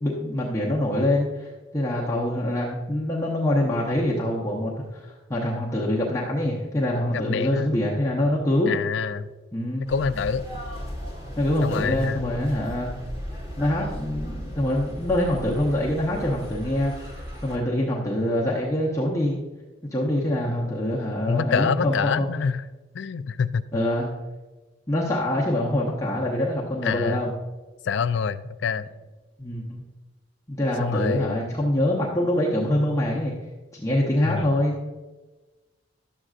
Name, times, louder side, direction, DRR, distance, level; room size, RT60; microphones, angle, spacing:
voice 1, 0.0-8.7 9.5-9.9 11.4-13.0 13.6-19.4 19.9-22.3 23.7-24.1 24.9-27.3 29.4-29.8 30.5-33.3 33.7-34.8, left 1 dB, 15° left, -5 dB, 0.8 m, -25 dB
voice 2, 7.1-7.8 8.7-9.3 9.8-10.4 11.6-12.3 21.3-22.6 22.9-23.6 26.8-27.2 27.8-28.9 30.8-31.4 34.2-34.5, left 6 dB, 65° left, 13 dB, 0.4 m, -26 dB
sound 1, 9.9-17.6, equal, 15° right, 1.5 m, -36 dB
11.0 x 7.7 x 2.4 m, 1.2 s
head